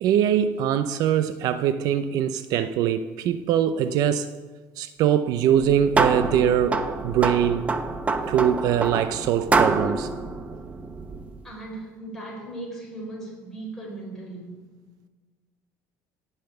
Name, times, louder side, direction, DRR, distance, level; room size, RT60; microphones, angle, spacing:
voice 1, 0.0-4.3 4.8-7.7 8.3-10.1, right 9 dB, 60° right, 0.6 m, -22 dB
sound 1, 5.5-11.4, right 3 dB, 20° right, 0.8 m, -26 dB
voice 2, 11.4-14.6, right 2 dB, 5° left, 4.7 m, -37 dB
17.0 x 5.8 x 8.0 m
cardioid pair, 155°, 7 cm